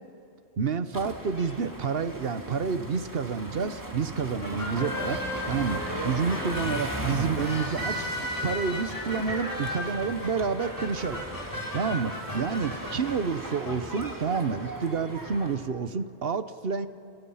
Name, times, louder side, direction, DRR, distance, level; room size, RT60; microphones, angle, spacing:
voice 1, 0.6-5.2 5.5-8.0 8.4-11.2 11.7-16.9, right 5 dB, 60° right, 11 dB, 1.2 m, -29 dB
sound 1, 0.9-15.5, right 1 dB, 15° right, 2.5 m, -38 dB
sound 2, 4.4-13.1, equal, 15° left, 5.4 m, -35 dB
29.5 x 29.0 x 5.7 m, 2.7 s
omnidirectional pair, 1.1 m